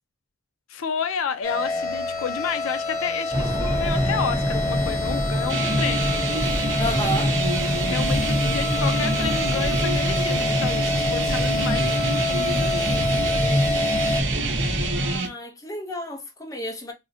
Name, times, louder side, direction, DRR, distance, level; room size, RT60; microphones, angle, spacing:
voice 1, 0.7-6.2 7.8-13.1, left 7 dB, 85° left, 0.4 m, -31 dB
sound 1, 1.4-14.2, left 2 dB, 45° left, 0.9 m, -28 dB
sound 2, 3.3-15.2, equal, 25° right, 0.6 m, -26 dB
sound 3, 5.5-15.3, right 3 dB, 65° right, 0.7 m, -28 dB
voice 2, 6.8-7.3 14.9-16.9, equal, 15° left, 0.6 m, -31 dB
3.7 x 2.0 x 2.6 m
head